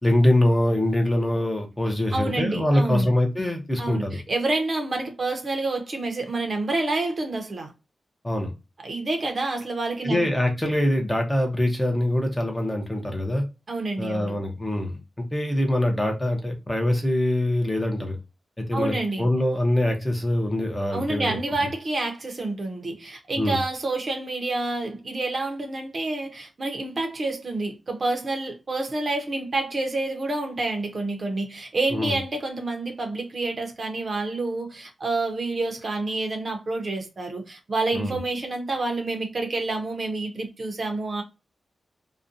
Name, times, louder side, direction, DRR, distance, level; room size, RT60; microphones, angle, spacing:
voice 1, 0.0-4.2 8.2-8.5 10.0-13.4 14.0-18.2 18.6-21.5 23.4-23.6 31.9-32.2 37.9-38.2, left 1 dB, 10° left, 0.6 m, -24 dB
voice 2, 2.1-3.1 3.8-7.7 8.8-10.3 13.7-14.4 18.7-19.3 20.9-41.2, right 2 dB, 40° right, 0.6 m, -28 dB
2.5 x 2.1 x 2.5 m
wide cardioid pair, 135°, 0 cm